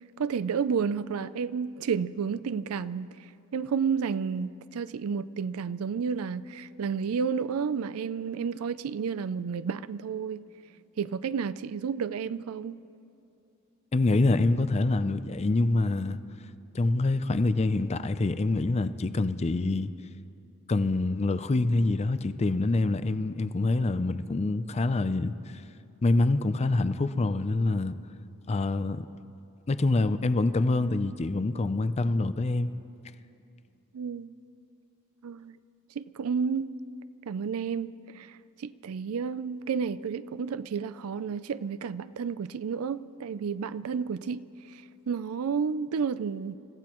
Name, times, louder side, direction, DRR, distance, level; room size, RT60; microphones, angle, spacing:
voice 1, 0.2-3.1 3.5-10.4 11.0-12.8 33.9-34.3 35.2-35.6 36.0-36.7 37.3-46.6, right 6 dB, 85° right, 0.4 m, -31 dB
voice 2, 13.9-16.2 16.7-19.9 20.7-25.6 26.0-27.9 28.5-29.1 29.7-32.7, left 2 dB, 30° left, 0.4 m, -26 dB
29.0 x 15.0 x 3.0 m
head